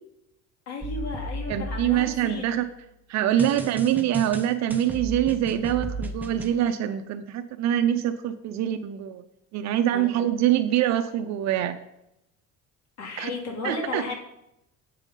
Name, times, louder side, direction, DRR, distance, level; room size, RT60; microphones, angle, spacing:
voice 1, 0.7-2.5 3.3-3.8 9.9-10.1 13.0-14.1, left 3 dB, 55° left, 1 dB, 2.2 m, -34 dB
sound 1, 0.8-2.7 3.4-6.5, equal, 5° right, 0.7 m, -35 dB
voice 2, 1.5-2.6 3.1-9.2 9.5-11.8 13.2-13.3 13.6-14.0, right 11 dB, 60° right, 9 dB, 0.6 m, -24 dB
8.2 x 5.6 x 5.3 m, 0.83 s
cardioid pair, 145°, 31 cm